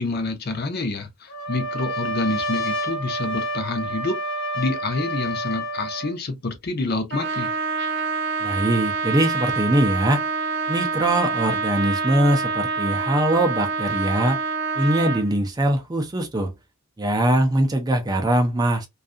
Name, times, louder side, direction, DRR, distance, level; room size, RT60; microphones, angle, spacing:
voice 1, 0.0-4.2 4.5-7.5, left 2 dB, 45° left, 0.6 m, -27 dB
Trumpet, 1.3-6.1, equal, 75° left, 0.8 m, -29 dB
Trumpet 2, 7.1-15.3, right 4 dB, 55° right, 0.7 m, -26 dB
voice 2, 8.4-10.2 10.7-14.4 14.8-16.5 17.0-18.9, right 1 dB, 20° right, 0.4 m, -22 dB
2.6 x 2.4 x 2.4 m
head